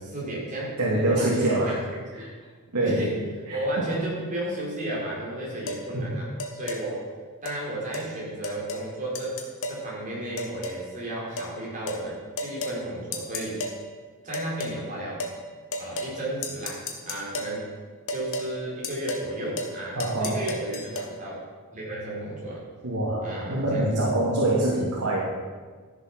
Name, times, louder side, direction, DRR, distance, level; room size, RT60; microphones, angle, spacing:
voice 1, 0.0-1.8 2.2-2.3 2.8-3.1 3.5-7.0 7.4-9.4 9.7-13.6 14.2-15.2 15.8-17.7 18.1-21.4 21.7-22.6 23.2-23.9, right 1 dB, 35° right, -5 dB, 4.5 m, -33 dB
voice 2, 0.8-1.9 2.1-2.3 2.7-3.1 3.5-3.9 5.9-6.2 20.0-20.4 22.8-25.2, right 1 dB, 85° right, -5 dB, 2.4 m, -25 dB
sound 1, 5.7-5.8 6.4-6.8 7.4-7.6 7.9-8.1 8.4-8.9 9.1-9.8 10.4-10.8 11.4-11.5 11.9-12.0 12.4-12.8 13.1-13.8 14.3-14.8 15.2-15.4 15.7-16.2 16.4-17.6 18.1-18.5 18.8-19.3 19.6-19.7 20.0-21.1, left 2 dB, 60° left, 1.6 m, -33 dB
13.5 x 7.5 x 6.0 m, 1.5 s
head